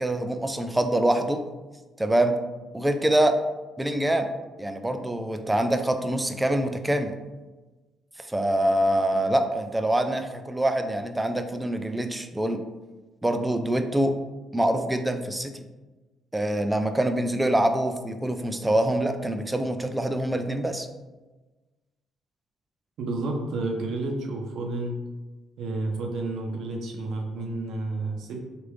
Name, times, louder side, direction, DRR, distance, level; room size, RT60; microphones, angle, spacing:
voice 1, 0.0-1.4 2.0-2.4 2.7-3.4 3.8-4.3 4.6-7.1 8.2-12.6 13.2-14.2 14.5-15.6 16.3-20.9, right 1 dB, 10° right, 7 dB, 0.3 m, -25 dB
voice 2, 23.0-24.9 25.6-28.4, right 2 dB, 75° right, 2 dB, 0.6 m, -30 dB
3.2 x 2.5 x 3.1 m, 1.2 s
cardioid pair, 90°, 0 cm